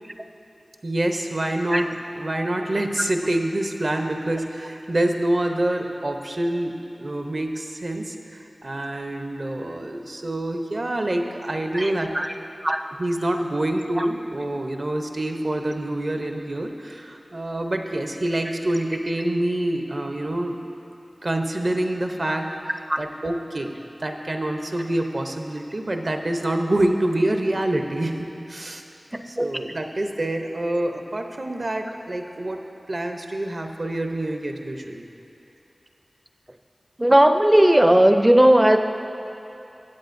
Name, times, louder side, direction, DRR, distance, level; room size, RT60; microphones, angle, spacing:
voice 1, 0.8-12.3 13.0-20.7 21.2-23.7 24.0-28.8 29.2-32.6 32.9-35.1, right 1 dB, 50° right, 4 dB, 0.7 m, -26 dB
voice 2, 11.7-12.3 12.6-12.8 14.0-14.1 22.9-23.0 29.1-29.5 37.0-38.8, right 1 dB, 15° right, 7 dB, 0.5 m, -17 dB
16.0 x 8.1 x 2.6 m, 2.8 s
wide cardioid pair, 70°, 0 cm